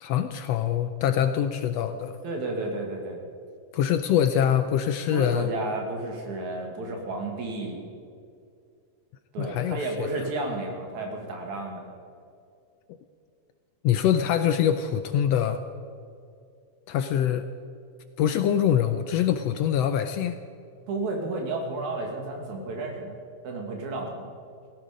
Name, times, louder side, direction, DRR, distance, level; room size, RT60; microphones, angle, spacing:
voice 1, 0.0-2.2 3.7-5.5 9.4-10.2 13.8-15.6 16.9-17.5 18.2-20.4, left 9 dB, 80° left, 10 dB, 1.5 m, -24 dB
voice 2, 2.2-3.2 5.1-7.8 9.3-11.9 20.9-23.2 23.4-24.3, right 2 dB, 75° right, 2 dB, 3.5 m, -32 dB
17.0 x 16.5 x 5.1 m, 2.4 s
omnidirectional pair, 3.3 m